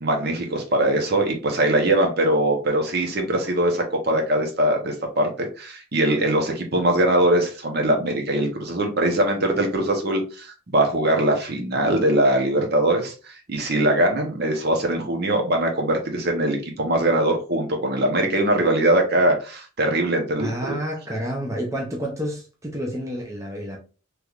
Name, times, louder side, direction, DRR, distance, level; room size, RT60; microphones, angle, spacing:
voice 1, 0.0-20.5, right 1 dB, 50° right, 0.8 m, -22 dB
voice 2, 20.4-23.8, equal, 15° right, 0.6 m, -29 dB
3.4 x 3.1 x 2.4 m
head